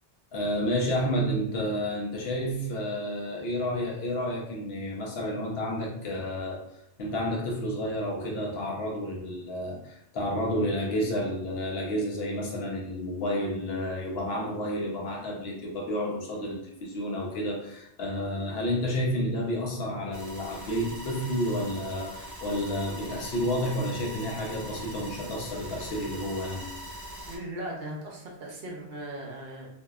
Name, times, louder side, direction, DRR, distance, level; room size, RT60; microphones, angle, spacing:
voice 1, 0.3-6.6 7.0-26.7, equal, 65° left, -1 dB, 0.8 m, -30 dB
sound 1, 20.1-27.4, right 1 dB, 25° right, 0.4 m, -42 dB
voice 2, 27.3-29.7, right 1 dB, 65° right, -1 dB, 0.8 m, -38 dB
2.6 x 2.2 x 2.2 m, 0.76 s
omnidirectional pair, 1.2 m